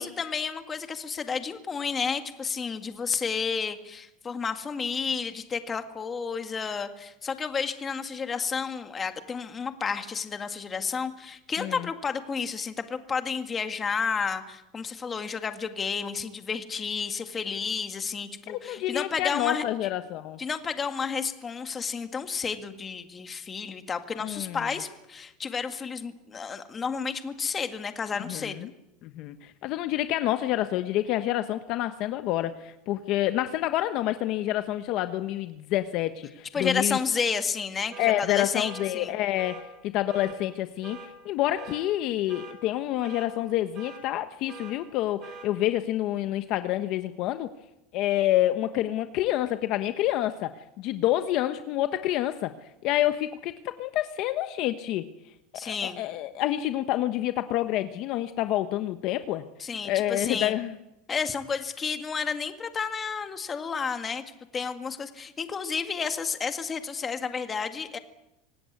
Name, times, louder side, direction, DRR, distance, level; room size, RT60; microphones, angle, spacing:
voice 1, 0.0-19.6 20.4-28.7 36.5-39.1 55.5-56.0 59.6-60.5 61.1-64.2 64.5-68.0, left 5 dB, 20° left, 7 dB, 2.0 m, -31 dB
voice 2, 18.5-20.4 24.2-24.7 28.3-28.7 29.0-37.0 38.0-47.5 47.9-50.5 50.8-52.5 52.8-55.1 55.6-59.4 59.8-60.7, left 14 dB, 50° left, 9 dB, 1.2 m, -28 dB
sound 1, 37.9-38.2 38.6-38.9 39.4-39.6 40.1-40.4 40.8-41.1 41.6-41.8 42.3-42.6 43.0-43.3 43.7-44.0 44.5-44.7 45.2-45.5, right 5 dB, 30° right, 5.5 m, -43 dB
25.5 x 18.0 x 9.5 m, 0.89 s
supercardioid pair, 150°, 0 cm